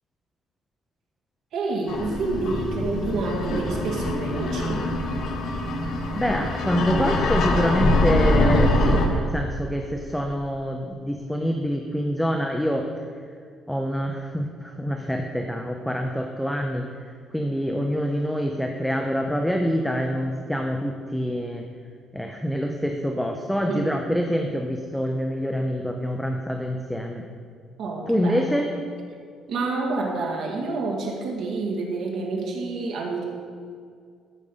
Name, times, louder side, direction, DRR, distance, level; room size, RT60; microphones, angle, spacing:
voice 1, 1.5-4.8 23.7-23.9 27.8-28.6 29.5-33.2, right 3 dB, 60° right, 0 dB, 1.9 m, -28 dB
sound 1, 1.9-9.1, left 1 dB, 55° left, 1.3 m, -23 dB
voice 2, 6.1-12.9 13.7-16.9 17.3-21.6 22.1-27.2 28.1-28.7, equal, ahead, 3 dB, 0.5 m, -26 dB
13.5 x 5.3 x 5.4 m, 2.2 s
cardioid pair, 170°, 0 cm